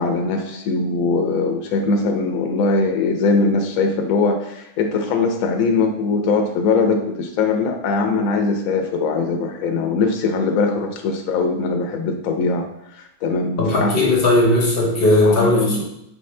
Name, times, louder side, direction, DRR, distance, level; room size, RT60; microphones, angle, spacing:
voice 1, 0.0-12.7 12.9-14.0 15.2-15.8, left 4 dB, 75° left, 3 dB, 1.0 m, -21 dB
voice 2, 13.6-15.8, left 1 dB, 45° left, -1 dB, 0.9 m, -17 dB
4.6 x 2.7 x 3.2 m, 0.83 s
omnidirectional pair, 1.5 m